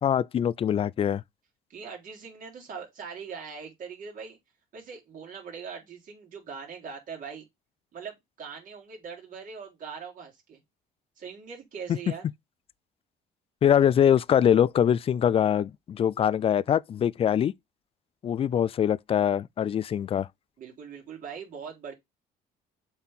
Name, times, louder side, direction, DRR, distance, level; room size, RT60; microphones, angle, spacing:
voice 1, 0.0-1.2 11.9-12.0 13.6-17.5 18.2-20.3, left 9 dB, 35° left, 0.4 m, -23 dB
voice 2, 1.7-4.4 4.7-7.4 7.9-10.6 11.2-12.3 20.6-21.9, right 6 dB, 55° right, 3.5 m, -41 dB
7.4 x 4.4 x 3.7 m
cardioid pair, 110°, 17 cm